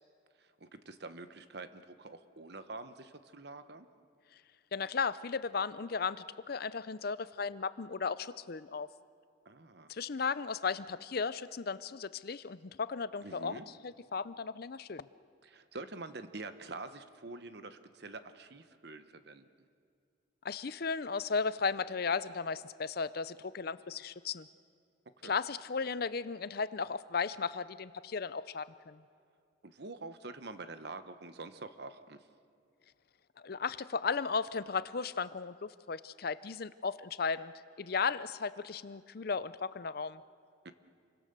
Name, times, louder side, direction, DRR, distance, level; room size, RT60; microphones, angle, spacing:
voice 1, 0.4-3.9 9.4-9.9 13.2-13.7 15.4-19.4 25.2-25.4 29.6-32.3 40.6-40.7, right 3 dB, 55° right, 10 dB, 1.0 m, -46 dB
voice 2, 4.7-8.9 9.9-15.1 20.4-24.5 25.2-29.0 33.4-37.5 37.8-40.2, left 5 dB, 50° left, 15 dB, 0.5 m, -35 dB
28.5 x 23.5 x 6.8 m, 2.3 s
head